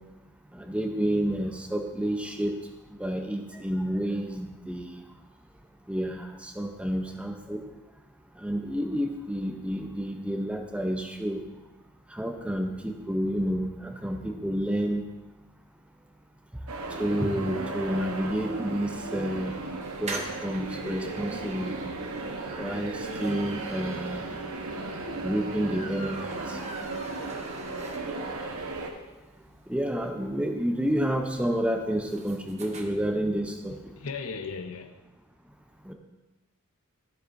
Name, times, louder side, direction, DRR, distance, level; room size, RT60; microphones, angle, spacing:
voice 1, 0.5-2.5 3.0-5.0 5.9-7.6 8.4-11.4 12.1-15.0 17.0-19.6 20.0-21.8 22.6-24.3 25.2-26.6 29.7-33.9 35.9-36.0, equal, 5° right, 0.6 m, -30 dB
sound 1, 16.7-28.9, right 3 dB, 75° right, 1.1 m, -35 dB
sound 2, 19.8-28.4 28.8-28.9 29.1-29.2 29.4-32.8, right 3 dB, 30° right, 0.9 m, -43 dB
voice 2, 33.7-34.9, left 5 dB, 65° left, 0.7 m, -37 dB
12.5 x 8.1 x 2.6 m
head